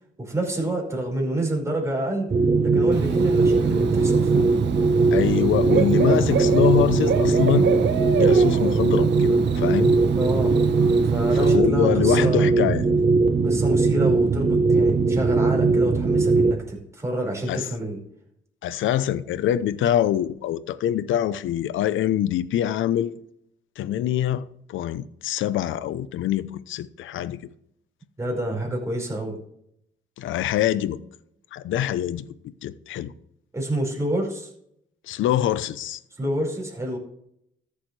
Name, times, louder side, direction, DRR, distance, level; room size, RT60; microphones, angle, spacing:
voice 1, 0.2-2.3 2.6-4.6 10.1-10.6 11.0-12.5 13.4-18.0 28.2-29.4 33.5-34.5 36.1-37.0, right 1 dB, 15° right, 5.1 m, -28 dB
sound 1, 2.3-16.5, right 4 dB, 35° right, 0.9 m, -20 dB
Bird / Cricket, 2.9-11.6, right 7 dB, 65° right, 1.1 m, -29 dB
voice 2, 5.1-7.7 8.1-10.0 11.4-12.8 17.5-17.6 18.6-23.1 23.8-24.4 24.7-27.4 30.2-31.0 31.5-32.3 32.6-33.1 35.1-36.0, left 11 dB, 80° left, 0.7 m, -24 dB
14.0 x 8.5 x 3.3 m
cardioid pair, 90°, 20 cm